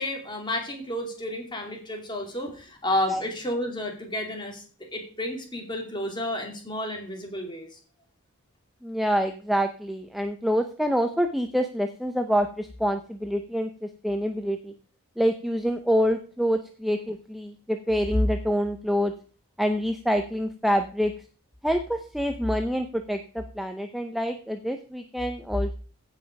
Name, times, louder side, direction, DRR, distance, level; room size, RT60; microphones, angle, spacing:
voice 1, 0.0-7.8, left 1 dB, 20° left, 2 dB, 2.7 m, -31 dB
voice 2, 8.8-14.7 15.2-19.1 19.6-21.1 21.6-25.7, equal, ahead, 6 dB, 0.6 m, -26 dB
16.0 x 5.8 x 5.2 m, 0.41 s
head